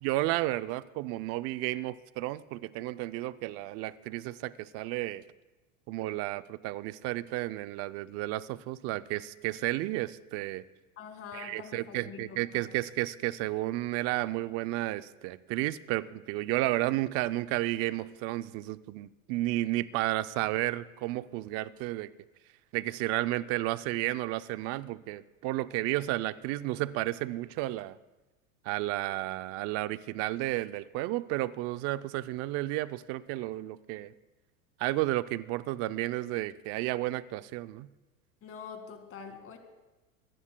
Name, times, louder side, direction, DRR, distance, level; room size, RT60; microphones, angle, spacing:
voice 1, 0.0-5.2 5.9-10.6 11.3-22.1 22.7-28.0 28.7-34.1 34.8-37.9, right 17 dB, 35° right, 16 dB, 0.4 m, -32 dB
voice 2, 11.0-12.7 38.4-39.6, left 6 dB, 30° left, 6 dB, 2.1 m, -45 dB
24.0 x 17.5 x 2.2 m, 1.1 s
supercardioid pair, 125°, 44 cm